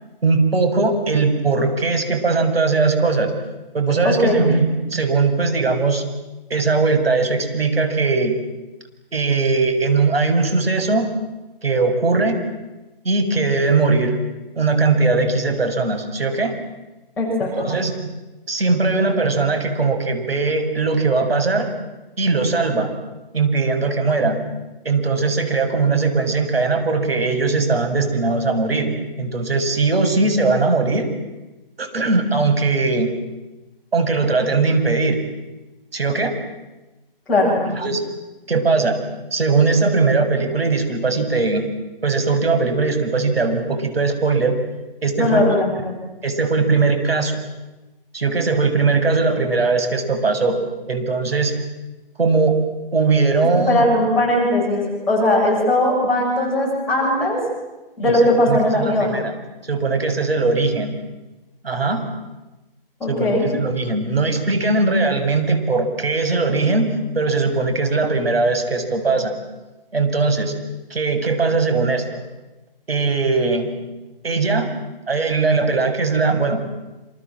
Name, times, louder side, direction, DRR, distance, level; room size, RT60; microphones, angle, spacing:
voice 1, 0.2-3.3 3.7-6.0 6.5-8.4 9.1-11.1 11.6-12.4 13.0-14.2 14.6-16.6 17.6-18.0 18.5-21.7 22.2-22.9 23.3-24.4 24.8-31.1 31.8-33.1 33.9-35.2 35.9-36.4 37.7-38.0 38.5-39.0 39.3-41.6 42.0-44.6 45.0-45.4 46.2-47.4 48.1-50.6 50.9-51.5 52.2-52.6 52.9-53.9 58.0-58.2 58.5-59.3 59.7-61.0 61.6-62.0 63.1-69.3 69.9-70.5 70.9-72.2 72.9-73.7 74.2-74.7 75.1-76.6, right 3 dB, 90° right, 7 dB, 7.2 m, -19 dB
voice 2, 4.0-4.4 17.2-17.7 37.3-37.6 45.2-46.0 53.4-57.4 58.0-59.2 63.0-63.5, left 1 dB, 5° left, -10 dB, 7.2 m, -19 dB
28.5 x 27.5 x 7.7 m, 1.1 s
hypercardioid pair, 180°, 29 cm